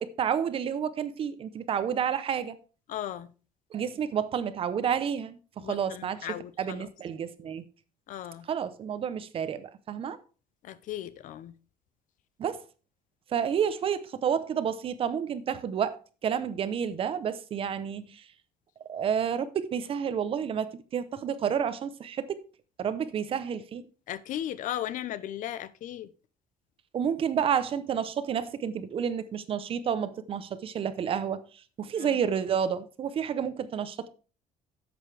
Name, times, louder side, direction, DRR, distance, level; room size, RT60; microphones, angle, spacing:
voice 1, 0.0-2.6 3.7-6.3 6.6-7.6 8.5-10.2 12.4-12.6 13.3-18.0 18.9-22.4 22.8-23.8 26.9-31.4 31.8-34.1, right 8 dB, 40° right, 0.7 m, -30 dB
voice 2, 2.9-3.3 5.6-6.9 8.1-8.5 10.6-11.5 24.1-26.1 32.0-32.2, left 11 dB, 60° left, 0.7 m, -36 dB
11.0 x 7.9 x 3.3 m
cardioid pair, 170°, 15 cm